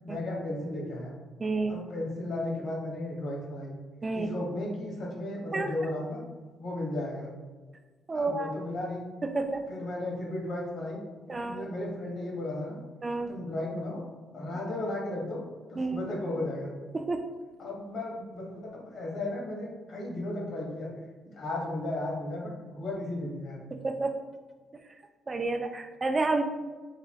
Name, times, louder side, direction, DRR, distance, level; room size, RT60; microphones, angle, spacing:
voice 1, 0.0-1.1 1.7-3.8 4.1-6.2 6.6-7.3 8.1-9.1 9.7-11.0 11.3-12.8 13.3-14.0 14.3-15.4 15.7-16.7 17.6-20.9 21.2-23.6, left 1 dB, 60° left, -2 dB, 1.2 m, -35 dB
voice 2, 1.4-1.8 4.0-4.3 5.5-5.7 8.1-8.5 9.2-9.7 11.3-11.7 13.0-13.4 15.8-16.1 16.9-17.2 23.7-24.1 25.3-26.4, right 3 dB, 30° right, 6 dB, 0.3 m, -30 dB
4.8 x 2.9 x 2.3 m, 1.3 s
cardioid pair, 90°, 0 cm